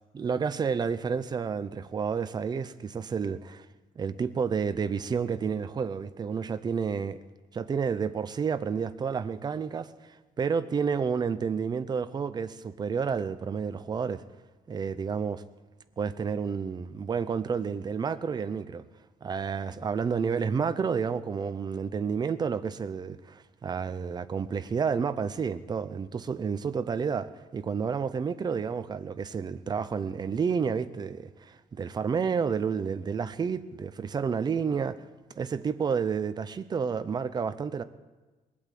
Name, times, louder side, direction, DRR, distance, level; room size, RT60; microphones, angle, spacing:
voice 1, 0.1-3.7 4.0-7.2 7.5-9.9 10.4-14.2 14.7-15.4 16.0-18.8 19.2-35.0 35.4-37.8, right 6 dB, 30° right, 0.6 m, -30 dB
21.0 x 8.5 x 7.6 m
cardioid pair, 180°, 15 cm